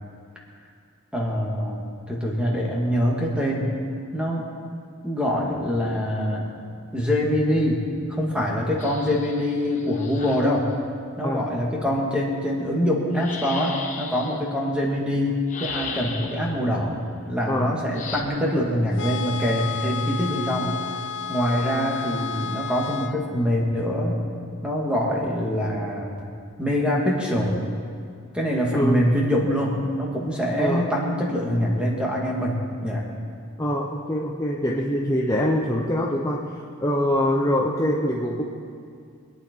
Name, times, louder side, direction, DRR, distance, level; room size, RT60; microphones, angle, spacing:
voice 1, 1.1-3.7 4.1-4.5 5.0-6.5 6.9-10.7 11.2-16.9 17.3-20.8 21.3-24.2 24.6-26.3 26.6-27.6 28.3-33.0, equal, 5° right, -3 dB, 2.2 m, -24 dB
sound 1, 8.8-10.5 13.1-14.4 15.5-16.6 17.9-18.2, left 5 dB, 35° left, 1.3 m, -36 dB
sound 2, 18.9-23.2, left 6 dB, 55° left, 0.8 m, -31 dB
voice 2, 28.7-29.1 30.6-30.9 33.6-36.5 36.8-38.4, equal, 15° left, -3 dB, 0.9 m, -24 dB
24.5 x 9.4 x 4.7 m, 2.3 s
head